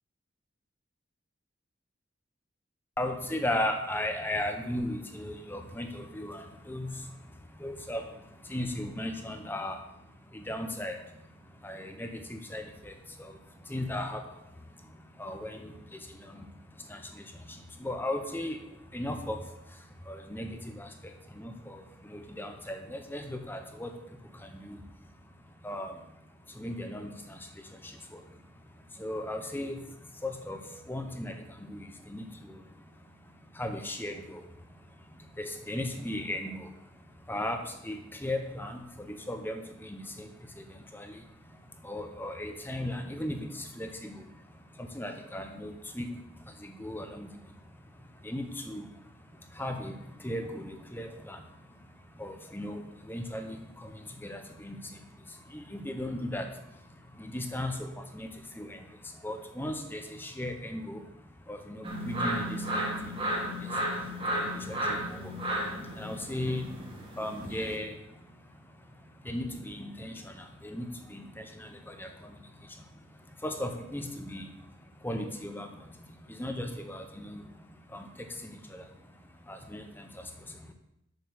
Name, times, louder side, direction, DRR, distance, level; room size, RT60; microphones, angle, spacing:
voice 1, 3.0-80.7, left 1 dB, 10° left, 5 dB, 0.9 m, -38 dB
sound 1, 61.8-67.7, right 1 dB, 30° right, 1.9 m, -33 dB
6.7 x 6.7 x 6.7 m, 0.83 s
head